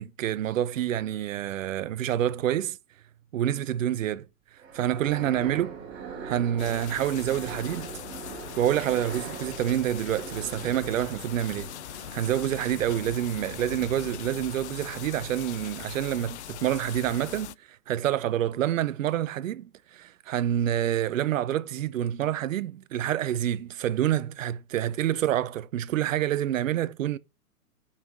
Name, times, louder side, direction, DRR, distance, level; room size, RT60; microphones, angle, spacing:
voice 1, 0.0-2.8 3.3-4.3 4.7-5.8 6.2-7.9 8.6-11.7 12.1-17.5 17.9-27.2, right 11 dB, 60° right, 0.8 m, -27 dB
sound 1, 4.6-12.6, right 6 dB, 25° right, 3.2 m, -41 dB
sound 2, 6.6-17.6, left 13 dB, 50° left, 0.5 m, -41 dB
8.6 x 5.7 x 6.2 m
hypercardioid pair, 130°, 44 cm